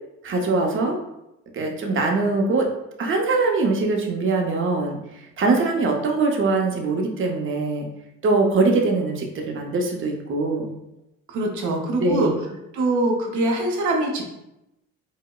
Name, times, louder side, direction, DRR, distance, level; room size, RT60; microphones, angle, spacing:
voice 1, 0.2-1.0 1.5-2.7 3.0-5.0 5.4-7.9 8.2-10.7 12.0-12.3, right 3 dB, 40° right, 2 dB, 0.7 m, -22 dB
voice 2, 11.3-12.3 12.7-14.2, right 2 dB, 75° right, 1 dB, 0.8 m, -23 dB
4.7 x 2.1 x 2.3 m, 0.88 s
cardioid pair, 90°, 30 cm